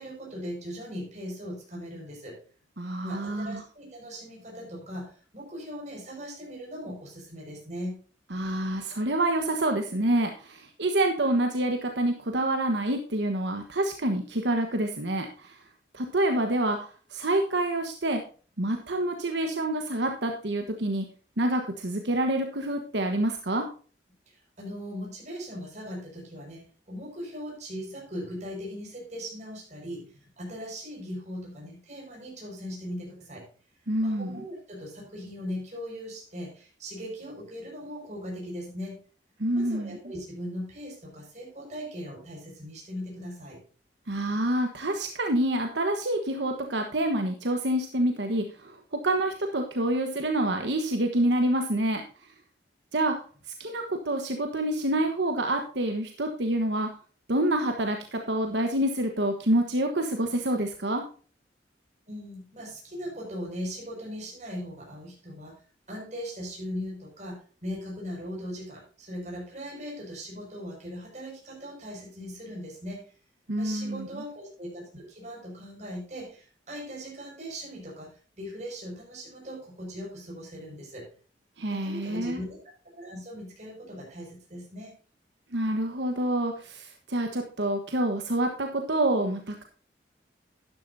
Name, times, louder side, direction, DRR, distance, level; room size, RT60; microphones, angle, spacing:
voice 1, 0.0-2.4 3.0-7.9 24.3-33.5 34.0-39.0 39.5-43.6 62.1-73.1 73.6-81.1 81.7-82.6 83.0-84.9, equal, 40° right, -3 dB, 5.7 m, -39 dB
voice 2, 2.8-3.6 8.3-15.6 15.9-18.2 18.6-21.1 21.4-23.7 33.9-34.4 39.4-40.0 44.1-52.3 52.9-53.2 53.5-56.9 57.3-61.0 73.5-74.2 81.6-82.4 85.5-89.6, right 1 dB, 75° right, 4 dB, 1.3 m, -27 dB
12.0 x 10.5 x 2.7 m, 0.39 s
head